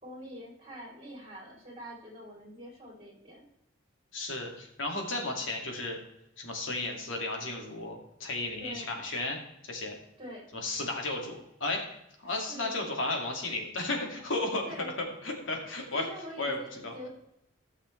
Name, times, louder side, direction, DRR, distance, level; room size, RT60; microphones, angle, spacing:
voice 1, 0.0-3.5 8.6-9.0 10.2-10.5 12.2-12.7 14.6-15.0 15.9-17.1, equal, 30° right, -2 dB, 3.4 m, -45 dB
voice 2, 4.1-6.0 6.4-9.4 9.7-10.0 10.6-11.8 12.2-14.7 15.0-16.1 16.4-16.9, left 2 dB, 80° left, 1 dB, 2.2 m, -34 dB
15.0 x 6.6 x 3.3 m, 0.80 s
head